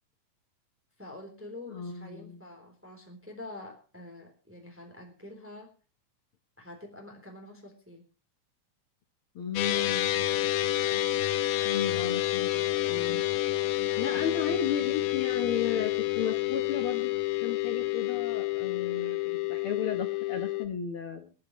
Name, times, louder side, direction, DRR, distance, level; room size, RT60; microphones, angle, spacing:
voice 1, 1.0-5.7 6.6-8.0 9.6-10.0 13.9-14.5, left 2 dB, 5° right, 2 dB, 3.1 m, -46 dB
voice 2, 1.7-2.4 9.3-10.7 11.6-13.2 14.0-17.1 17.4-21.3, left 7 dB, 65° left, 5 dB, 1.3 m, -35 dB
sound 1, 9.6-20.7, left 15 dB, 90° left, 2.8 m, -29 dB
26.5 x 10.0 x 3.1 m, 0.35 s
omnidirectional pair, 4.1 m